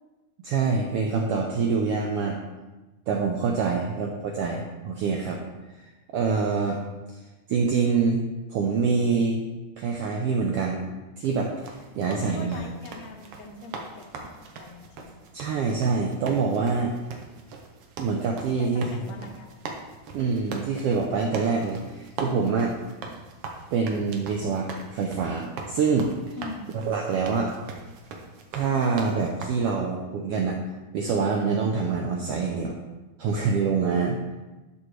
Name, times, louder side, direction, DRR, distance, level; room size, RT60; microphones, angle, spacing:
voice 1, 0.4-2.4 3.1-5.4 6.1-6.8 7.5-8.2 8.5-9.4 9.8-10.8 11.2-12.7 15.3-16.9 18.0-19.0 20.1-22.7 23.7-26.1 26.7-27.5 28.5-30.6 30.9-32.8 33.2-34.2, right 5 dB, 90° right, 1 dB, 1.3 m, -25 dB
sound 1, 11.2-29.5, right 4 dB, 70° right, 1.5 m, -41 dB
voice 2, 12.1-15.2 18.5-19.5 26.4-26.7, left 4 dB, 75° left, 3 dB, 1.8 m, -42 dB
11.5 x 5.0 x 3.2 m, 1.2 s
omnidirectional pair, 3.4 m